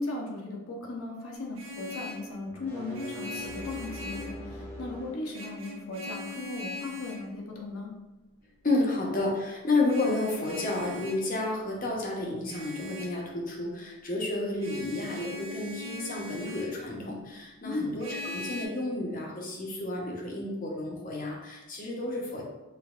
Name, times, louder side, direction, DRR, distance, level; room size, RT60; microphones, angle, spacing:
voice 1, 0.0-7.9 17.6-18.0, left 2 dB, 75° left, -1 dB, 0.9 m, -37 dB
Vehicle horn car horn honking, 1.3-2.3 2.9-4.4 5.3-7.3 9.9-11.3 12.5-13.2 14.6-16.8 18.0-18.7, left 3 dB, 65° right, 0.9 m, -40 dB
sound 1, 2.5-5.3, right 1 dB, 10° left, 0.8 m, -42 dB
voice 2, 8.6-22.4, left 2 dB, 40° left, -2 dB, 0.8 m, -31 dB
5.6 x 2.6 x 2.4 m, 1.1 s
head